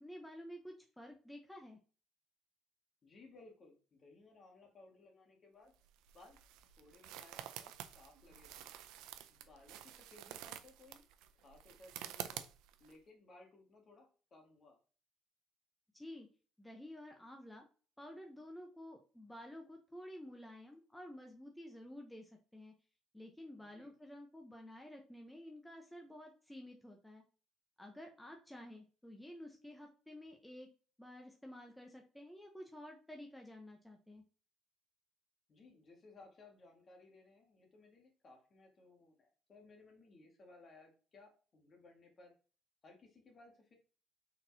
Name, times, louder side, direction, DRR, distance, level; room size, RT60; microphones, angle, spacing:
voice 1, 0.0-1.8 15.9-16.3 16.6-17.7 18.0-22.7 23.1-27.2 27.8-30.7 31.0-34.2, left 1 dB, 5° left, 2 dB, 0.8 m, -52 dB
voice 2, 3.0-5.7 6.1-6.4 6.8-8.7 9.3-11.0 11.3-12.5 12.8-14.8 23.6-23.9 35.5-42.3 42.8-43.7, left 2 dB, 40° left, 2 dB, 1.7 m, -61 dB
sound 1, 5.7-12.9, right 11 dB, 85° right, 0.4 m, -49 dB
4.3 x 4.0 x 2.7 m, 0.38 s
cardioid pair, 100°, 0 cm